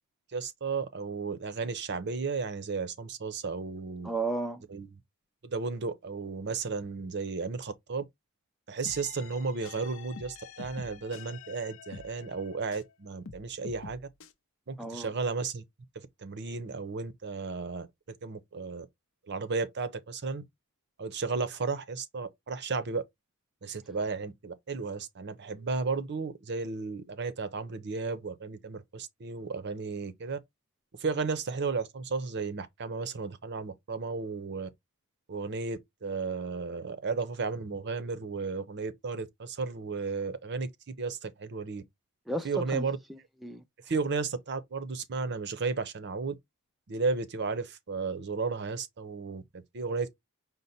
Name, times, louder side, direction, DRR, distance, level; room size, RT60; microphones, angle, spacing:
voice 1, 0.3-4.1 4.7-4.9 5.4-8.0 8.7-14.0 14.7-15.6 15.9-17.9 18.2-18.9 19.3-20.4 21.0-23.0 23.6-30.4 31.0-34.7 35.3-41.8 42.4-43.0 43.9-46.3 46.9-50.1, right 4 dB, 50° right, 0.6 m, -34 dB
voice 2, 4.0-4.6 14.8-15.1 42.3-43.6, right 2 dB, ahead, 0.4 m, -34 dB
sound 1, 8.8-12.9 13.2-14.3, left 5 dB, 65° left, 0.6 m, -47 dB
5.2 x 2.1 x 4.2 m
head